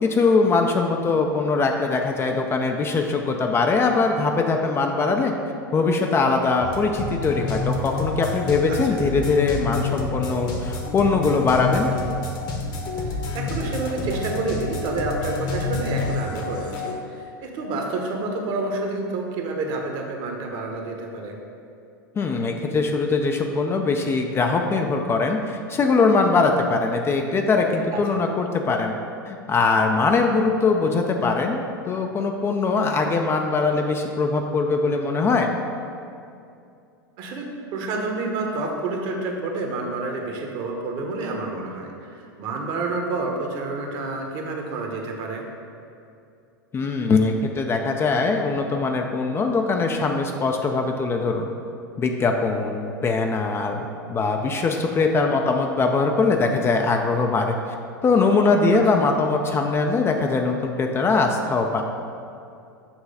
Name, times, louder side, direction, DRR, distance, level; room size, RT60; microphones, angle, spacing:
voice 1, 0.0-5.3 5.7-11.9 22.2-28.9 29.3-35.5 46.7-51.5 52.0-57.6 58.0-61.8, left 4 dB, 20° left, 3 dB, 0.4 m, -21 dB
sound 1, 6.6-16.9, left 3 dB, 40° left, 1.0 m, -28 dB
voice 2, 8.7-9.0 13.0-21.4 28.1-28.2 37.2-45.5 58.7-58.8, right 3 dB, 45° right, 2 dB, 1.1 m, -29 dB
7.1 x 3.1 x 5.5 m, 2.5 s
figure-of-eight pair, 90°, 12 cm